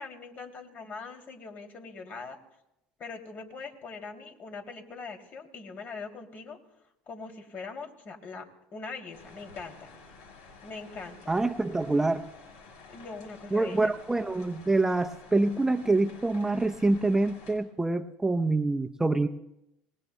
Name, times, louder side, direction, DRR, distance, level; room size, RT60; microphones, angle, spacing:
voice 1, 0.0-2.4 3.0-6.6 7.1-8.4 8.7-9.9 10.6-11.3 12.9-13.9, left 4 dB, 45° left, 4 dB, 2.6 m, -42 dB
sound 1, 9.1-17.6, left 4 dB, 80° left, 4.7 m, -51 dB
voice 2, 11.3-12.2 13.5-19.3, right 2 dB, 10° right, 7 dB, 0.7 m, -26 dB
25.5 x 20.0 x 2.2 m, 0.86 s
supercardioid pair, 90°, 4 cm